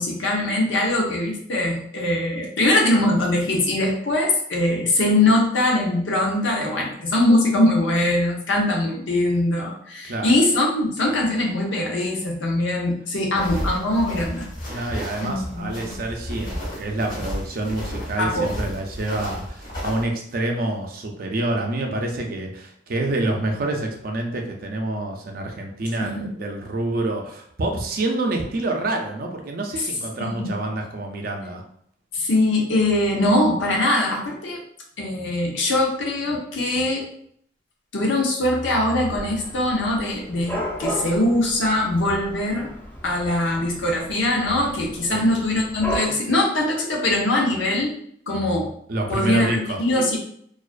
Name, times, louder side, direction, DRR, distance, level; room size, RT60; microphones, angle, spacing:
voice 1, 0.0-14.5 14.8-16.0 18.2-18.5 26.0-26.3 30.2-30.5 32.1-34.6 35.0-37.1 37.9-42.7 43.0-48.0 48.3-48.7 49.1-50.2, left 1 dB, 80° left, 0 dB, 0.6 m, -22 dB
voice 2, 10.0-10.4 14.7-31.6 45.1-45.3 48.9-49.8, right 2 dB, 50° right, 2 dB, 0.4 m, -27 dB
sound 1, 13.4-20.0, equal, 45° left, 0.8 m, -32 dB
Dog / Cat, 39.0-46.1, equal, 10° left, 0.4 m, -34 dB
2.3 x 2.2 x 2.4 m, 0.65 s
head